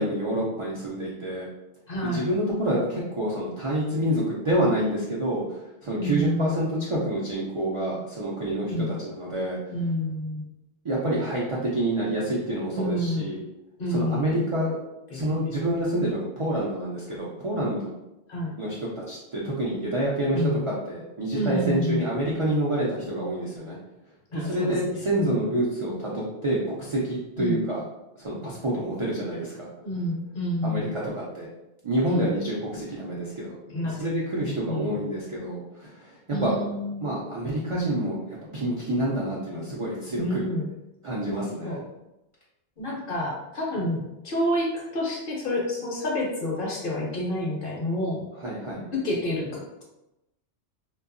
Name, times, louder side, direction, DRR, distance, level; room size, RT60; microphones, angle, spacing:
voice 1, 0.0-1.5 2.0-9.6 10.8-13.4 13.9-14.8 15.1-17.8 18.5-23.8 24.3-27.8 28.2-29.7 30.6-31.5 31.8-33.5 33.8-36.1 36.4-36.5 37.0-40.4 41.0-41.8 48.4-48.8, right 1 dB, 55° right, -6 dB, 0.3 m, -27 dB
voice 2, 1.9-2.2 6.0-6.8 8.7-9.0 9.7-10.4 12.7-13.3 13.8-14.3 15.1-15.4 18.3-18.5 20.3-20.6 21.3-22.1 24.3-25.4 27.4-27.6 29.8-30.9 32.0-32.3 33.7-34.1 34.4-34.9 36.3-37.1 40.2-40.7 41.6-41.8 42.8-48.2 48.9-49.8, left 1 dB, 60° left, -2 dB, 0.8 m, -29 dB
2.7 x 2.3 x 2.5 m, 0.93 s
omnidirectional pair, 1.1 m